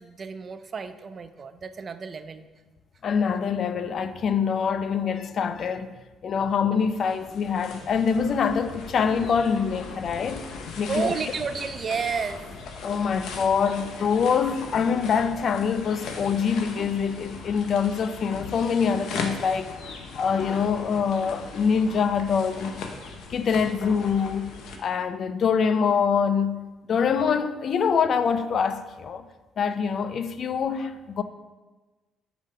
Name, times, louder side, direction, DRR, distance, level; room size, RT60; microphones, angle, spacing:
voice 1, 0.0-2.5 10.9-12.4, right 5 dB, 40° right, 0.3 m, -31 dB
voice 2, 3.0-6.0 6.2-10.5 10.8-11.2 12.8-19.7 20.2-23.0 23.3-24.5 24.8-29.3 29.6-31.2, left 6 dB, 55° left, 0.3 m, -25 dB
sound 1, 6.8-24.8, left 4 dB, 75° left, 0.7 m, -39 dB
5.0 x 3.6 x 5.5 m
cardioid pair, 90°, 0 cm